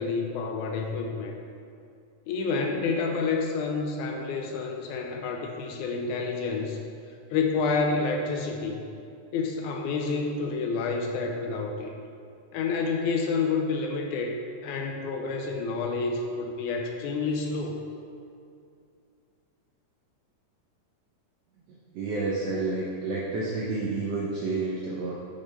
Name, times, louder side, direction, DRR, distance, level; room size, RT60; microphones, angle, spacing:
voice 1, 0.0-1.4 2.3-6.8 7.3-8.8 9.3-11.9 12.5-17.8, left 4 dB, 80° left, 2 dB, 1.9 m, -29 dB
voice 2, 21.7-25.1, right 3 dB, 80° right, -4 dB, 1.4 m, -30 dB
8.6 x 6.3 x 3.2 m, 2.4 s
omnidirectional pair, 3.7 m